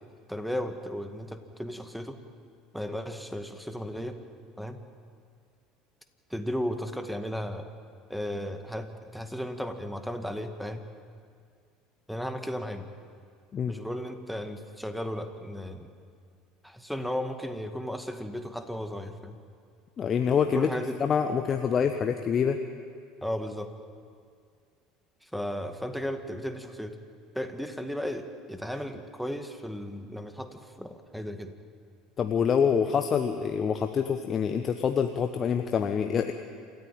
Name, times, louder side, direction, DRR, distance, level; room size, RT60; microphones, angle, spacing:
voice 1, 0.3-2.2 2.7-4.2 4.6-4.8 6.3-7.7 8.1-10.8 12.1-12.9 13.7-15.9 16.6-19.4 20.5-21.0 23.2-23.7 25.2-26.9 27.3-31.5, equal, ahead, 6 dB, 2.0 m, -35 dB
voice 2, 20.0-20.7 21.0-22.6 32.2-36.3, left 7 dB, 35° left, 6 dB, 1.1 m, -26 dB
27.5 x 14.5 x 9.0 m, 2.2 s
figure-of-eight pair, 65°, 0 cm